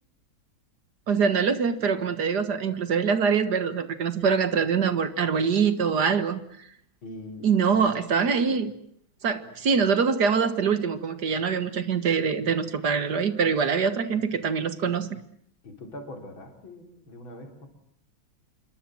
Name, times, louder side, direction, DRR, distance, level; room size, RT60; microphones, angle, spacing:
voice 1, 1.1-6.4 7.4-8.7 9.2-15.2, right 6 dB, 55° right, 12 dB, 1.9 m, -24 dB
voice 2, 7.0-7.5 15.6-17.7, left 1 dB, 80° left, 4 dB, 4.8 m, -42 dB
27.0 x 24.0 x 7.7 m, 0.67 s
omnidirectional pair, 2.1 m